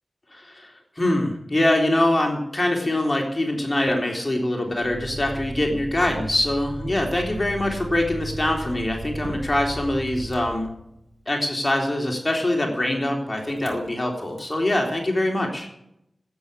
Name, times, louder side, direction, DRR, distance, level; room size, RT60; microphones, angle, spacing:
voice 1, 0.3-10.7 11.3-15.7, left 1 dB, 30° left, 1 dB, 3.5 m, -24 dB
Motor vehicle (road), 4.8-11.2 13.5-13.9 14.2-14.6, right 1 dB, 60° right, 4.7 m, -36 dB
12.5 x 9.5 x 8.3 m, 0.78 s
cardioid pair, 40°, 0 cm